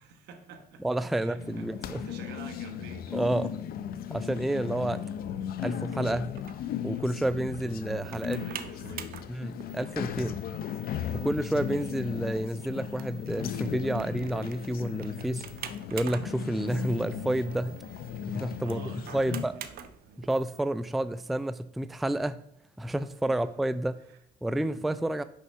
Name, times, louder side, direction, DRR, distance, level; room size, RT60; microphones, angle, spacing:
voice 1, 0.0-0.9 1.1-3.2 4.5-4.9 7.6-9.3 18.6-20.2 23.3-23.6 24.0-24.2 24.6-24.8 25.1-25.2, right 5 dB, 80° right, 6 dB, 1.3 m, -48 dB
voice 2, 0.8-2.0 3.1-3.5 4.1-5.0 5.6-6.3 6.8-8.4 9.3-10.4 11.1-15.4 15.9-17.8 18.3-18.8 19.1-19.5 20.3-22.4 22.8-23.9 24.4-25.2, right 1 dB, ahead, 13 dB, 0.3 m, -29 dB
sound 1, 1.4-19.4, left 9 dB, 60° left, 0.6 m, -36 dB
sound 2, 5.9-20.6, right 9 dB, 65° right, 0.7 m, -47 dB
6.2 x 5.6 x 5.5 m, 0.76 s
cardioid pair, 110°, 17 cm